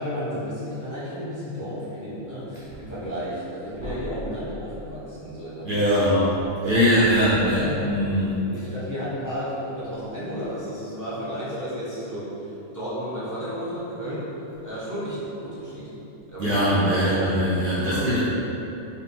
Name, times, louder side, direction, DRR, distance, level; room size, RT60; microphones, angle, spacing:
voice 1, 0.0-6.2 6.6-6.7 7.1-7.8 8.3-14.3 14.6-15.9 16.3-17.1 17.8-18.2, equal, 15° left, -10 dB, 0.7 m, -33 dB
voice 2, 5.6-6.3 6.6-8.3 16.4-18.2, equal, 60° right, -8 dB, 0.6 m, -21 dB
3.6 x 2.3 x 4.2 m, 3.0 s
omnidirectional pair, 1.5 m